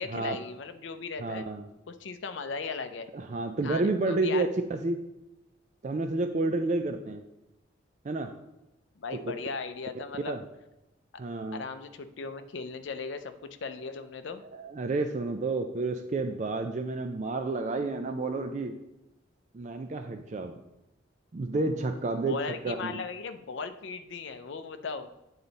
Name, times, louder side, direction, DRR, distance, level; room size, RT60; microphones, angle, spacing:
voice 1, 0.0-1.5 1.9-3.1 3.6-4.5 9.0-10.3 11.5-14.4 22.2-25.1, left 4 dB, 65° left, 9 dB, 0.5 m, -37 dB
voice 2, 1.2-1.7 3.1-5.0 5.8-7.2 8.0-8.3 10.3-10.4 11.2-11.6 14.4-18.7 19.5-20.6 21.3-22.4 22.6-23.0, right 3 dB, 35° right, 6 dB, 0.4 m, -30 dB
8.7 x 3.9 x 4.0 m, 0.92 s
head